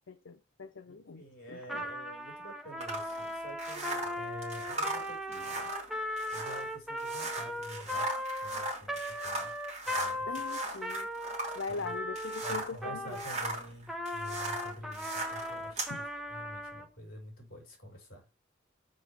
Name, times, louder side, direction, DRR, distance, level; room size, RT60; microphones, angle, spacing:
voice 1, 0.1-1.8 10.3-11.1 11.6-13.2 15.9-16.0, left 4 dB, 85° left, 0.6 m, -41 dB
voice 2, 0.9-5.7 6.3-9.5 9.8-10.4 11.7-11.9 12.4-18.2, equal, 50° left, 4.3 m, -48 dB
Trumpet, 1.6-13.4 13.9-16.9, left 1 dB, ahead, 0.7 m, -38 dB
sound 1, 2.8-12.8 13.1-15.9, right 2 dB, 35° right, 2.5 m, -38 dB
6.3 x 4.7 x 5.7 m
head